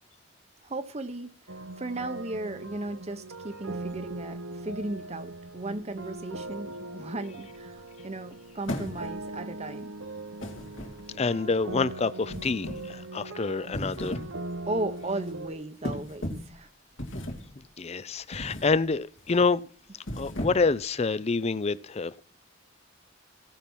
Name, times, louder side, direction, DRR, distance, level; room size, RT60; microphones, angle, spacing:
voice 1, 0.6-1.3 1.8-9.9 14.7-16.7, right 2 dB, 35° right, 0.8 m, -36 dB
sound 1, 1.5-15.5, right 2 dB, 80° right, 1.0 m, -40 dB
sound 2, 8.6-9.3 10.4-11.3 12.3-13.0 13.6-14.4 14.8-15.0 15.8-16.6 17.0-17.6 18.3-18.8 19.2-19.4 20.0-20.8, left 1 dB, 75° left, 2.6 m, -36 dB
voice 2, 11.2-14.2 17.8-19.7 20.2-22.2, left 4 dB, 30° left, 0.5 m, -27 dB
17.0 x 5.8 x 6.1 m
head